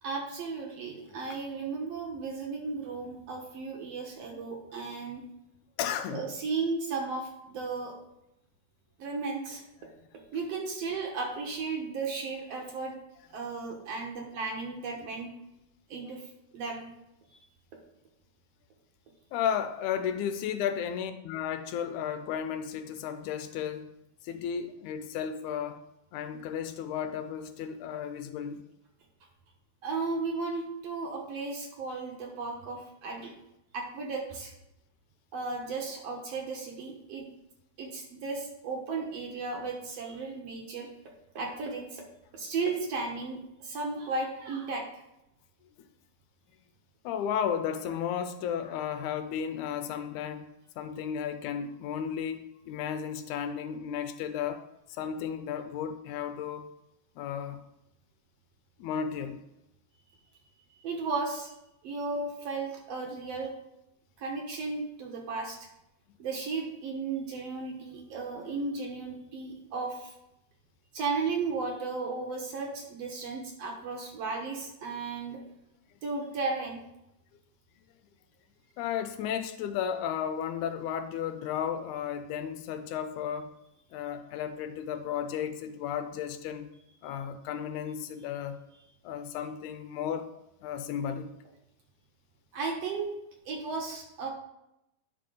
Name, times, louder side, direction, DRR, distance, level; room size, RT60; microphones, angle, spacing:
voice 1, 0.0-5.2 6.1-7.9 9.0-9.6 10.3-13.0 13.3-15.3 15.9-16.2 16.5-16.8 17.3-17.4 29.8-33.3 33.7-34.5 35.3-37.2 37.8-40.9 41.4-42.0 42.3-44.8 60.8-61.5 61.8-63.5 64.2-65.6 66.2-70.1 70.9-75.4 76.0-76.8 92.5-93.1 93.5-94.3, right 4 dB, 65° right, 1 dB, 1.9 m, -35 dB
voice 2, 5.8-6.3 9.9-10.0 19.3-23.9 24.2-25.8 26.1-28.6 47.0-50.5 50.8-54.6 55.0-56.7 57.2-57.6 58.8-59.4 78.8-83.5 83.9-86.7 87.0-88.6 89.0-90.3 90.6-91.3, left 8 dB, 80° left, 9 dB, 2.0 m, -34 dB
9.7 x 5.6 x 3.8 m, 0.85 s
omnidirectional pair, 3.5 m